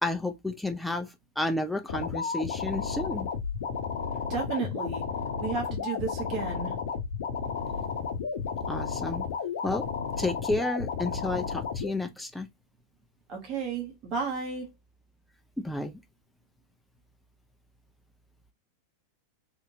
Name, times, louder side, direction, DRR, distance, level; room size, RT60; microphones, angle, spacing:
voice 1, 0.0-3.3 8.7-9.3 9.6-9.9 10.2-12.5 15.6-15.9, left 2 dB, 5° left, 0.4 m, -31 dB
sound 1, 1.9-11.9, left 6 dB, 55° left, 0.6 m, -32 dB
voice 2, 4.3-5.1 5.4-6.7 13.3-14.7, right 5 dB, 35° right, 1.1 m, -33 dB
3.0 x 2.7 x 2.6 m
figure-of-eight pair, 90°, 0 cm